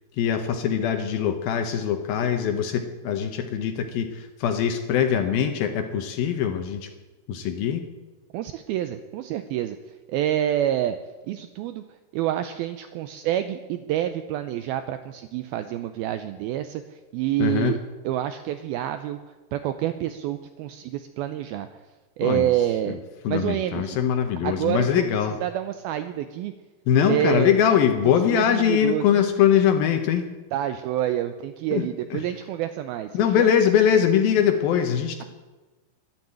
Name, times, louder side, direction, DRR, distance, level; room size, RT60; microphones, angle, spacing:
voice 1, 0.2-6.9 7.3-7.8 17.4-17.8 22.2-22.5 22.9-23.0 23.2-25.4 26.9-30.3 31.7-32.2 33.1-35.2, left 8 dB, 75° left, 7 dB, 2.4 m, -22 dB
voice 2, 8.3-11.0 11.3-17.8 18.0-19.2 19.5-21.8 22.2-23.0 23.3-24.0 24.4-26.5 27.1-27.6 28.0-29.3 30.5-33.5, right 12 dB, 85° right, 10 dB, 2.2 m, -28 dB
12.0 x 12.0 x 8.9 m, 1.2 s
omnidirectional pair, 5.0 m